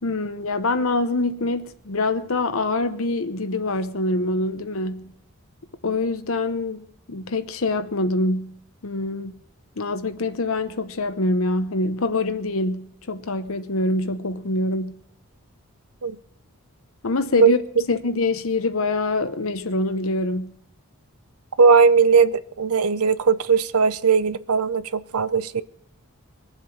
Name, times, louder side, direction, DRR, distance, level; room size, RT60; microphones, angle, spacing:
voice 1, 0.0-5.1 5.8-8.6 8.8-9.4 9.8-15.0 17.0-17.6 17.9-20.6, left 2 dB, 65° left, 0.9 m, -25 dB
voice 2, 21.6-25.6, right 5 dB, 80° right, 0.7 m, -18 dB
21.5 x 7.9 x 7.2 m
head